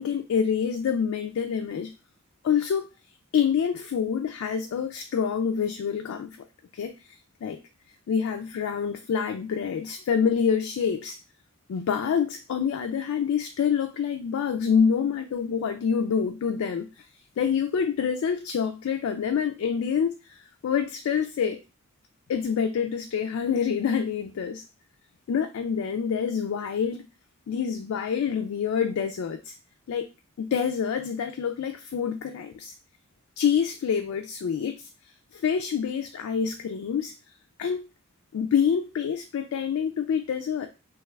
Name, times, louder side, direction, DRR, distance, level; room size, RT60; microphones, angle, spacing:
voice 1, 0.0-1.9 2.4-2.9 3.3-6.3 6.7-7.6 8.1-11.2 11.7-17.1 17.4-21.6 22.3-24.6 25.3-27.0 27.5-29.5 29.9-30.1 30.4-32.7 33.4-34.9 35.3-37.1 37.6-37.9 38.3-40.7, left 7 dB, 85° left, 0.3 m, -27 dB
2.9 x 2.3 x 3.2 m
head